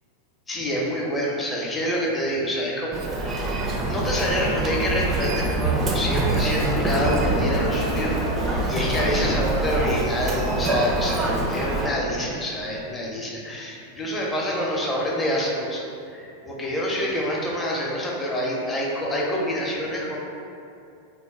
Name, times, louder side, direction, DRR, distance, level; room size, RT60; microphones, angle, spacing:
voice 1, 0.5-20.2, equal, 15° left, -3 dB, 0.6 m, -27 dB
Human voice, 2.9-11.9, right 2 dB, 25° right, 0.4 m, -25 dB
sound 1, 3.9-9.1, left 3 dB, 70° left, 0.8 m, -33 dB
3.0 x 2.0 x 4.0 m, 2.6 s
figure-of-eight pair, 90°, 0 cm